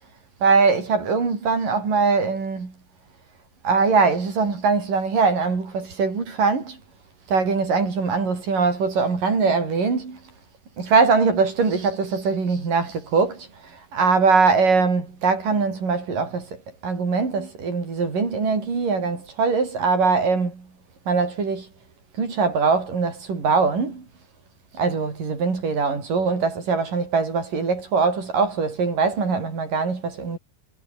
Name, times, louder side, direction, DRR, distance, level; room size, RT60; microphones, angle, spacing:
voice 1, 0.4-2.7 3.6-6.8 7.3-10.2 10.8-13.5 13.9-20.7 21.1-21.7 22.2-24.0 24.8-30.4, right 4 dB, 85° right, 7.6 m, -22 dB
omnidirectional pair, 3.7 m